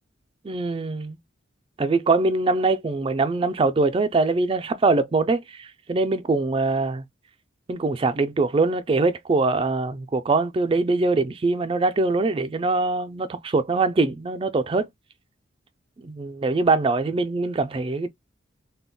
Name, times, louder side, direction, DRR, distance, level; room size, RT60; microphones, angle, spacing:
voice 1, 0.4-1.2 1.8-7.0 7.7-14.9 16.0-18.1, right 3 dB, 30° right, 0.3 m, -23 dB
2.2 x 2.0 x 3.7 m
head